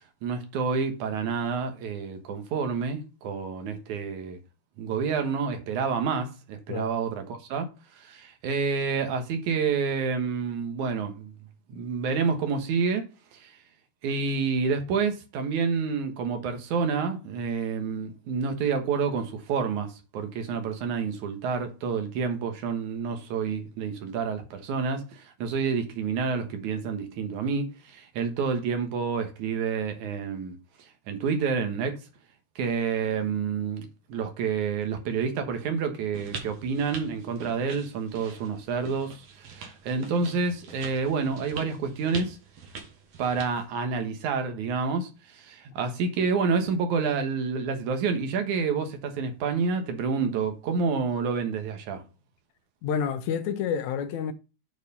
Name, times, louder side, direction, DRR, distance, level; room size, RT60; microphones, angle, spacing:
voice 1, 0.2-4.4 4.8-7.7 8.0-11.3 11.7-13.1 13.3-13.6 14.0-30.6 31.1-32.0 32.6-42.4 43.2-52.0, right 5 dB, 80° right, 2.7 m, -28 dB
sound 1, 36.1-43.7, right 4 dB, 60° right, 2.6 m, -43 dB
voice 2, 52.8-54.3, left 7 dB, 75° left, 2.2 m, -29 dB
7.9 x 4.5 x 5.3 m
omnidirectional pair, 3.4 m